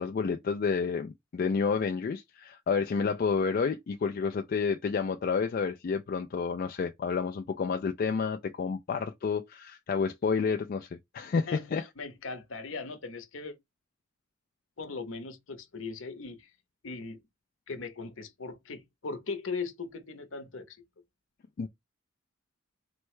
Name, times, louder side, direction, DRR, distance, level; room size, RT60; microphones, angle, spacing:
voice 1, 0.0-11.8 21.6-21.7, left 5 dB, 45° left, 0.3 m, -30 dB
voice 2, 11.5-13.6 14.8-16.5 16.8-17.2 17.7-20.8, left 4 dB, 65° left, 0.8 m, -39 dB
4.3 x 2.1 x 4.6 m
head